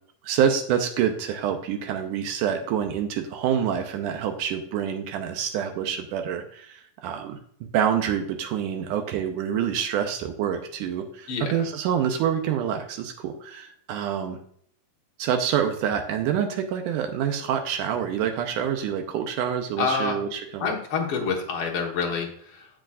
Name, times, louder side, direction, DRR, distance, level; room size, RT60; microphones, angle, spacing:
voice 1, 0.2-14.4 15.2-20.6, right 8 dB, 80° right, 5 dB, 1.9 m, -27 dB
voice 2, 19.8-20.2 20.6-22.7, left 5 dB, 85° left, 0 dB, 1.2 m, -27 dB
10.0 x 7.4 x 2.4 m, 0.63 s
omnidirectional pair, 4.4 m